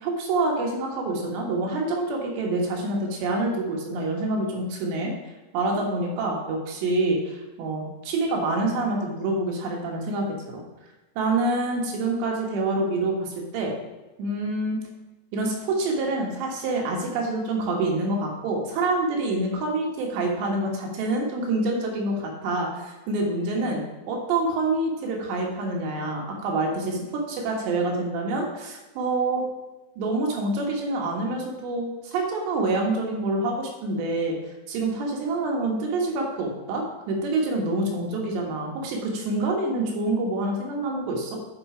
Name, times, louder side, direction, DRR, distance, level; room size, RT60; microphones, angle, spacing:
voice 1, 0.0-5.1 5.5-10.6 11.2-13.7 14.2-14.8 15.3-23.8 24.1-29.5 30.0-34.4 34.7-41.4, right 2 dB, 90° right, 0 dB, 3.8 m, -26 dB
9.9 x 5.4 x 5.0 m, 1.1 s
omnidirectional pair, 4.8 m